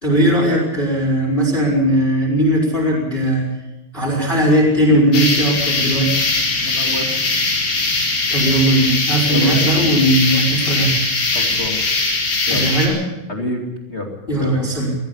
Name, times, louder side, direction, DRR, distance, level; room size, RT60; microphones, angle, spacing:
voice 1, 0.0-3.4 3.9-6.2 8.3-11.0 12.5-13.0 14.3-15.0, right 1 dB, 10° left, -2 dB, 4.9 m, -17 dB
sound 1, 5.1-12.9, left 3 dB, 70° left, 7.2 m, -20 dB
voice 2, 6.6-7.1 9.3-9.6 11.3-11.8 12.5-12.7 13.3-14.6, left 1 dB, 30° left, 1 dB, 1.3 m, -27 dB
21.5 x 14.5 x 8.6 m, 1.0 s
omnidirectional pair, 5.3 m